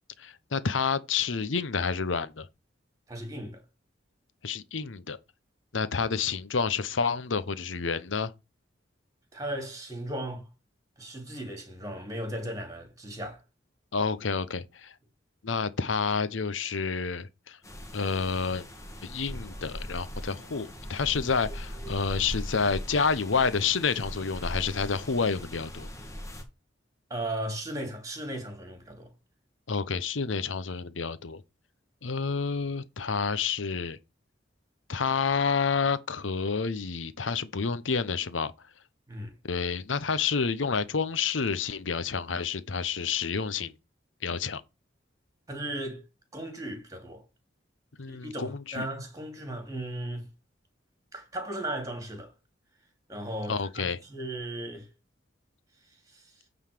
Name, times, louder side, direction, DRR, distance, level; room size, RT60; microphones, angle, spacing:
voice 1, 0.2-2.5 4.4-5.2 5.7-8.3 13.9-14.9 15.4-17.6 17.9-18.7 19.0-25.9 29.7-31.4 32.0-34.0 34.9-38.5 39.5-43.7 44.2-44.6 48.0-48.9 53.5-54.0, left 5 dB, 90° left, 0.8 m, -29 dB
voice 2, 3.1-3.6 9.3-10.5 11.0-13.4 27.1-29.1 39.1-39.3 45.5-46.1 46.3-47.2 48.1-50.3 51.1-52.3 53.1-54.9 56.1-56.2, right 1 dB, 20° right, 2.7 m, -36 dB
sound 1, 17.6-26.4, equal, 15° left, 1.8 m, -40 dB
9.2 x 4.0 x 6.6 m
head